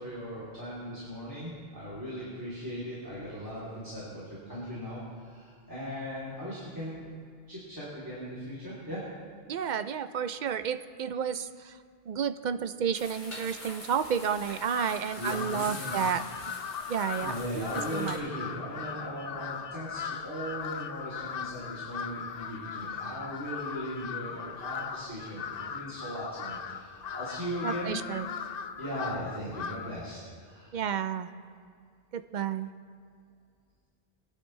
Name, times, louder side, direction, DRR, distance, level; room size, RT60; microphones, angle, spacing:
voice 1, 0.0-7.1 7.5-9.0 15.2-16.0 17.2-28.0 28.8-30.7, equal, 20° right, -9 dB, 3.0 m, -38 dB
voice 2, 9.5-11.8 12.1-16.2 16.9-18.2 27.6-28.3 30.7-31.3 32.1-32.7, right 7 dB, 55° right, 11 dB, 0.6 m, -31 dB
sound 1, 12.9-18.2, left 1 dB, 30° left, 2.1 m, -44 dB
Crow, 14.7-30.0, left 7 dB, 55° left, 0.5 m, -38 dB
22.0 x 9.9 x 3.2 m, 2.2 s
omnidirectional pair, 1.1 m